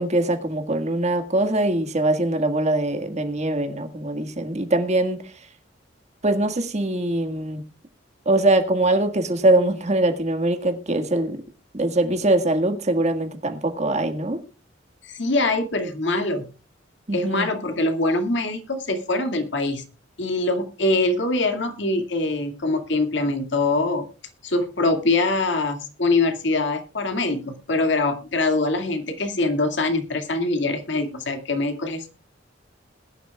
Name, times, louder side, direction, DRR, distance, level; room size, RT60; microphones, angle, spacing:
voice 1, 0.0-5.2 6.2-7.6 8.2-11.4 11.7-14.4 17.1-17.5, right 1 dB, 35° right, 7 dB, 1.7 m, -22 dB
voice 2, 15.0-16.5 17.1-19.8 20.2-24.1 24.4-32.1, left 2 dB, 65° left, 7 dB, 2.2 m, -23 dB
21.0 x 11.0 x 2.3 m, 0.33 s
head